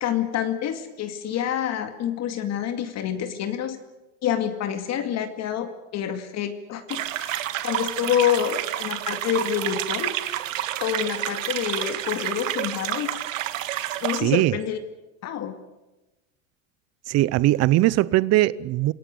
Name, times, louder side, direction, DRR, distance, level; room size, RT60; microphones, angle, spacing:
voice 1, 0.0-3.8 4.2-10.2 10.8-13.2 14.0-14.8 15.2-15.6, left 9 dB, 45° left, 8 dB, 2.2 m, -27 dB
sound 1, 6.9-14.2, right 13 dB, 85° right, 1.8 m, -29 dB
voice 2, 14.2-14.5 17.1-18.9, right 16 dB, 40° right, 20 dB, 0.7 m, -20 dB
27.0 x 17.0 x 8.3 m, 1.1 s
supercardioid pair, 110°, 38 cm